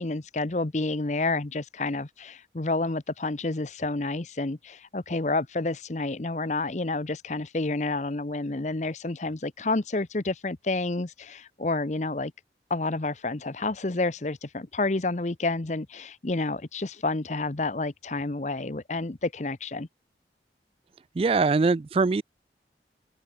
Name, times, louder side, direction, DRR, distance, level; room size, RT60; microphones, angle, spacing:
voice 1, 0.0-12.3 12.7-19.9, left 2 dB, 40° left, 0.8 m, -29 dB
voice 2, 21.2-22.2, right 4 dB, 30° right, 0.3 m, -22 dB
open air
head